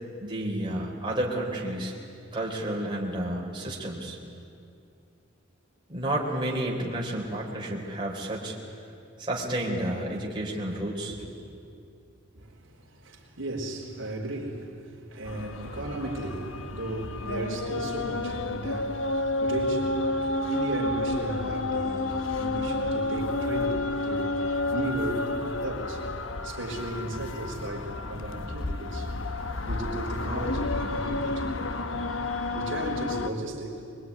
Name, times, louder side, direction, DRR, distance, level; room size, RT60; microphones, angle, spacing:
voice 1, 0.2-1.9 2.3-4.2 5.9-8.5 9.2-11.2, right 1 dB, 25° right, -3 dB, 4.2 m, -31 dB
voice 2, 12.3-25.3 25.6-26.1 26.4-29.1 29.6-31.6 32.5-33.8, right 1 dB, 75° right, -1 dB, 4.0 m, -35 dB
sound 1, 15.2-33.3, left 2 dB, 75° left, 1.2 m, -30 dB
24.5 x 22.5 x 9.7 m, 2.4 s
head